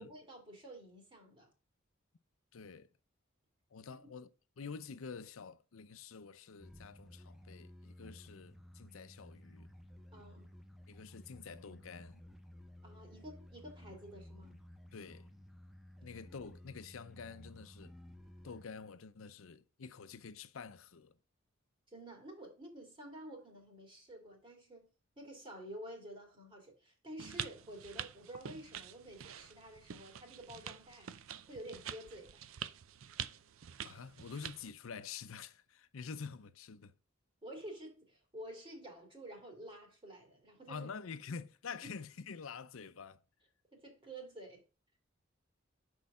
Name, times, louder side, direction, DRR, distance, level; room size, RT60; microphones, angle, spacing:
voice 1, 0.0-1.5 10.1-10.5 12.8-14.6 21.9-24.9 25.2-31.1 31.5-32.4 37.4-40.9 43.7-44.6, right 1 dB, 25° right, 2.5 m, -50 dB
voice 2, 2.5-2.9 3.7-4.3 4.6-9.7 10.9-12.3 14.9-15.3 16.0-18.0 18.4-21.2 33.8-36.9 40.7-43.2, left 5 dB, 75° left, 0.6 m, -48 dB
sound 1, 6.6-18.7, left 1 dB, ahead, 0.8 m, -55 dB
sound 2, 27.2-34.7, right 9 dB, 75° right, 0.5 m, -46 dB
6.4 x 4.7 x 5.4 m
head